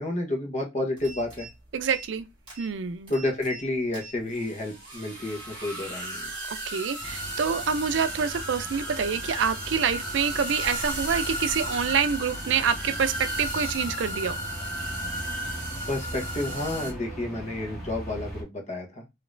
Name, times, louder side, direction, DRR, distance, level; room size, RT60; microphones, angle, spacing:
voice 1, 0.0-1.5 3.1-6.2 15.9-19.0, left 2 dB, 40° left, 1.1 m, -30 dB
sound 1, 1.0-1.5 1.8-2.2 2.5-2.7 3.1-3.6 3.9-16.9, right 1 dB, 30° right, 2.6 m, -35 dB
voice 2, 1.7-2.3 2.6-3.1 6.5-14.4, right 6 dB, 75° right, 0.4 m, -27 dB
sound 2, 7.0-18.4, equal, ahead, 1.9 m, -39 dB
5.0 x 2.9 x 2.6 m
head